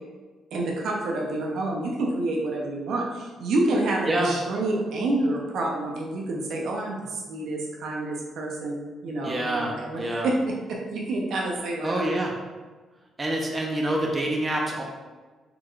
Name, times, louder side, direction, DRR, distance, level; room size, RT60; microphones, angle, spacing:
voice 1, 0.5-10.3 10.9-12.0, right 2 dB, 75° right, -1 dB, 0.8 m, -28 dB
voice 2, 9.2-10.3 11.8-12.3 13.2-14.8, right 1 dB, 25° right, -1 dB, 0.8 m, -26 dB
4.6 x 3.7 x 2.5 m, 1.3 s
cardioid pair, 90°, 0 cm